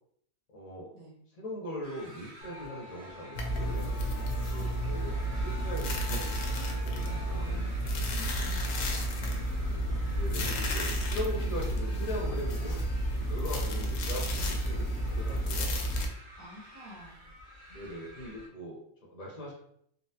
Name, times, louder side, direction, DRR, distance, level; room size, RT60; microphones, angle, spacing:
voice 1, 0.5-0.9 1.3-4.0 4.4-7.7 10.1-12.8 13.1-15.8 17.7-19.5, equal, 40° left, -3 dB, 0.6 m, -40 dB
sound 1, 1.8-18.5, equal, 60° right, 0.8 m, -51 dB
Musical instrument, 2.4-17.9, left 3 dB, 30° right, 1.3 m, -50 dB
sound 2, 3.3-16.1, equal, 80° left, 1.1 m, -31 dB
voice 2, 8.3-10.2 16.4-17.2, equal, 80° right, -4 dB, 1.6 m, -52 dB
3.8 x 2.1 x 2.7 m, 0.69 s
omnidirectional pair, 1.5 m